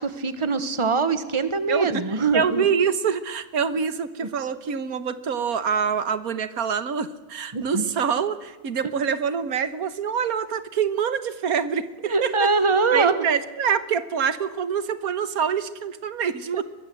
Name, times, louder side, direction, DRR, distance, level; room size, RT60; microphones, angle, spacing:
voice 1, 0.0-2.6 7.5-7.8 12.0-13.3 16.5-16.6, right 4 dB, 20° right, 11 dB, 1.4 m, -23 dB
voice 2, 1.7-12.5 12.9-16.6, right 7 dB, 90° right, 13 dB, 1.7 m, -25 dB
22.0 x 21.5 x 7.8 m, 1.3 s
omnidirectional pair, 1.5 m